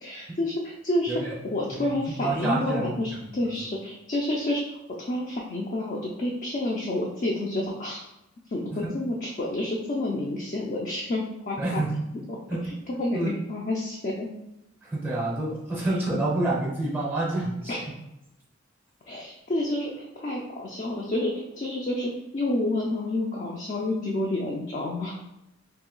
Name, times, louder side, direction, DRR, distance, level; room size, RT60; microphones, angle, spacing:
voice 1, 0.0-4.6 5.0-8.0 8.5-11.8 12.3-12.4 12.9-14.3 17.7-17.8 19.1-25.2, left 1 dB, 40° left, -2 dB, 0.4 m, -29 dB
voice 2, 1.7-3.5 8.7-8.9 11.6-12.0 12.5-12.7 13.1-13.3 14.8-17.7, right 2 dB, 10° right, -3 dB, 0.6 m, -28 dB
2.9 x 2.7 x 3.8 m, 0.89 s
head